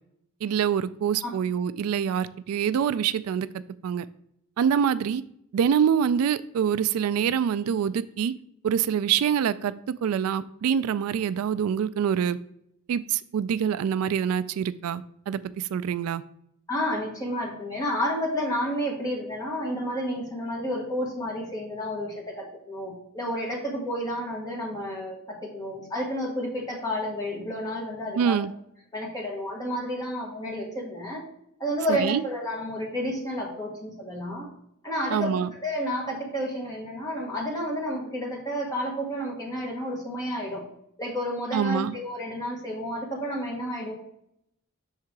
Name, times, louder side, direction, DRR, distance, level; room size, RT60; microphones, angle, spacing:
voice 1, 0.4-3.5 3.8-4.0 4.6-5.2 5.5-8.3 8.6-9.7 10.0-12.4 12.9-16.2 28.2-28.5 31.9-32.2 35.1-35.5 41.5-42.0, right 8 dB, 75° right, 15 dB, 0.3 m, -25 dB
voice 2, 16.7-28.4 28.9-31.2 31.6-34.5 34.8-40.6 41.0-43.9, equal, 15° left, -2 dB, 1.7 m, -31 dB
6.5 x 3.8 x 4.6 m, 0.74 s
head